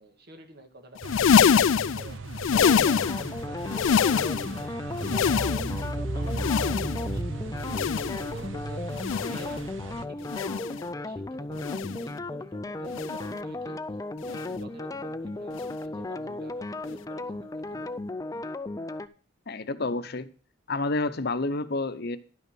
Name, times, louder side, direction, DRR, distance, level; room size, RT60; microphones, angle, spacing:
voice 1, 0.0-5.5 6.0-8.9 9.2-13.8 14.2-18.0, right 1 dB, 55° right, 6 dB, 1.7 m, -48 dB
sound 1, 1.0-3.4 3.6-4.6 4.9-5.9 6.3-7.2 7.6-8.4 8.9-9.6 10.3-10.8 11.6-12.1 12.9-13.3 14.2-14.6 15.5-15.7 16.9-17.0, left 7 dB, 85° left, 0.4 m, -25 dB
sound 2, 1.0-10.0, right 2 dB, 80° right, 0.7 m, -36 dB
sound 3, 2.5-19.1, left 2 dB, 20° left, 0.4 m, -35 dB
voice 2, 19.5-20.3 20.7-22.2, left 2 dB, 55° left, 11 dB, 0.8 m, -29 dB
11.0 x 5.6 x 6.1 m, 0.38 s
head